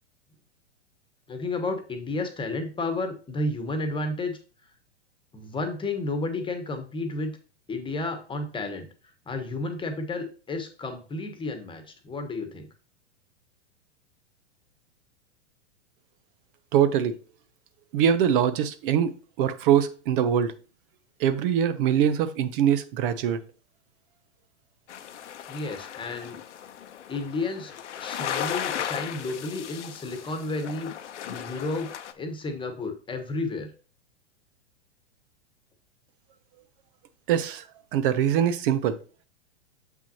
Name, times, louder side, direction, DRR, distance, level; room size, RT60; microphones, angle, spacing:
voice 1, 1.3-4.4 5.3-7.3 7.7-8.9 9.3-12.7 25.5-26.4 27.1-30.9 31.2-31.9 32.1-33.7, left 2 dB, 15° left, 1.2 m, -32 dB
voice 2, 16.7-17.1 17.9-20.5 21.2-23.4 37.3-37.6 37.9-39.0, right 9 dB, 50° right, 0.7 m, -23 dB
sound 1, 24.9-32.1, left 9 dB, 80° left, 0.9 m, -36 dB
7.3 x 5.9 x 2.9 m
hypercardioid pair, 115°, 35 cm